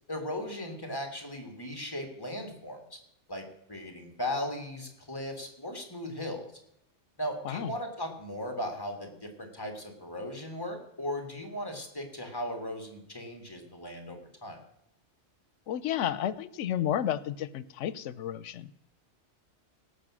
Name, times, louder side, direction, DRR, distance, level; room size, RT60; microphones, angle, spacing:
voice 1, 0.1-3.0 3.3-6.5 7.2-14.6, left 1 dB, 20° left, 4 dB, 1.9 m, -37 dB
voice 2, 15.7-18.7, left 10 dB, 85° left, 16 dB, 1.0 m, -32 dB
17.5 x 6.5 x 6.2 m, 0.75 s
omnidirectional pair, 1.2 m